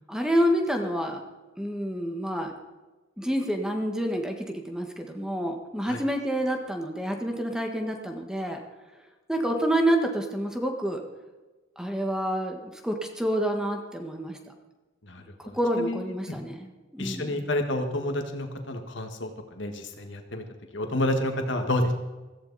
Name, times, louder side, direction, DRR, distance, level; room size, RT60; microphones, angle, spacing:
voice 1, 0.1-1.2 1.6-2.5 3.2-8.6 9.3-11.0 11.8-14.4 15.4-17.5, equal, 5° right, 3 dB, 1.5 m, -28 dB
voice 2, 15.1-16.4 17.0-19.3 19.6-20.4 20.7-21.9, left 1 dB, 70° left, 5 dB, 1.8 m, -29 dB
16.5 x 15.0 x 4.2 m, 1.2 s
head